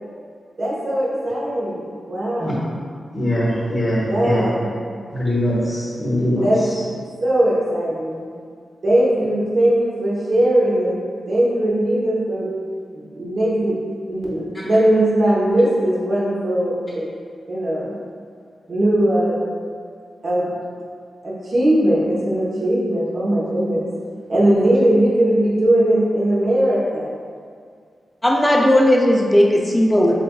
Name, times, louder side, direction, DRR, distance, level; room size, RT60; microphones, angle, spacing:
voice 1, 0.6-2.7 4.0-4.7 6.4-6.6 7.2-8.2 8.8-11.0 11.3-12.5 12.9-13.8 14.1-17.1 17.5-17.9 18.7-19.4 20.2-20.5 21.2-23.9 24.3-27.1, right 1 dB, 50° right, -6 dB, 1.0 m, -19 dB
voice 2, 3.1-4.4 5.1-6.4, equal, 30° left, -8 dB, 1.2 m, -21 dB
voice 3, 28.2-30.1, left 1 dB, 10° left, -1 dB, 0.5 m, -15 dB
7.1 x 2.5 x 2.3 m, 2.1 s
wide cardioid pair, 140°, 0 cm